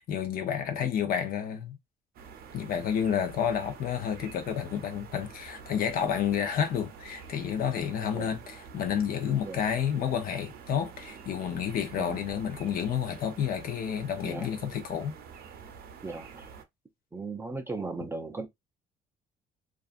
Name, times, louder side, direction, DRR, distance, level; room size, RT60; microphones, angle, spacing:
voice 1, 0.0-1.8 2.5-15.1, left 8 dB, 60° left, 0.7 m, -30 dB
sound 1, 2.1-16.6, right 6 dB, 65° right, 0.6 m, -47 dB
voice 2, 12.0-12.3 14.2-14.5 16.0-16.5 17.1-18.5, right 3 dB, 15° right, 0.4 m, -37 dB
2.4 x 2.4 x 2.4 m
cardioid pair, 110°, 17 cm